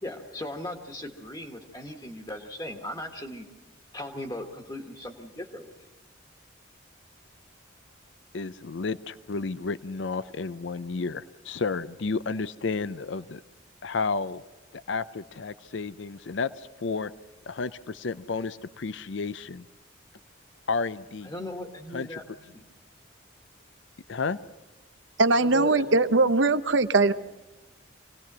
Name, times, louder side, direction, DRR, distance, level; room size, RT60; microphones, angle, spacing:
voice 1, 0.0-3.5 3.9-5.7 21.2-22.6 25.4-25.9, left 1 dB, 20° left, 4 dB, 1.5 m, -38 dB
voice 2, 8.3-13.4 13.8-14.4 14.7-17.1 17.5-19.7 20.7-21.3 21.9-22.2 24.1-24.4, left 4 dB, 70° left, 15 dB, 0.6 m, -32 dB
voice 3, 25.2-27.1, right 3 dB, 70° right, 12 dB, 0.9 m, -21 dB
25.5 x 18.5 x 6.1 m, 1.1 s
head